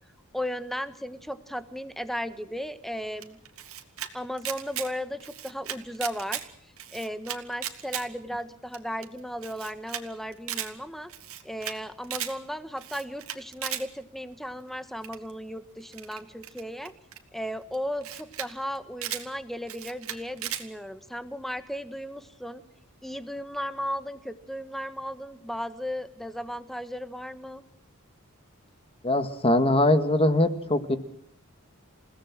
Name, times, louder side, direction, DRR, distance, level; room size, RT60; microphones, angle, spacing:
voice 1, 0.3-3.4 4.1-6.5 6.9-11.1 11.4-16.9 17.3-22.6 23.0-27.6, equal, ahead, 11 dB, 1.4 m, -35 dB
Camera, 3.2-4.1 4.4-4.9 5.2-6.4 6.8-8.0 8.4-8.5 8.7-8.8 9.0-9.1 9.4-10.0 10.3-10.7 11.1-11.8 12.0-12.3 12.8-13.8 15.0-15.3 15.9-17.2 17.7-17.8 18.0-18.5 18.7-19.2 19.7-20.6, right 11 dB, 70° right, 2.4 m, -35 dB
voice 2, 29.0-31.0, left 1 dB, 25° left, 10 dB, 1.8 m, -22 dB
29.0 x 17.5 x 7.5 m, 0.72 s
head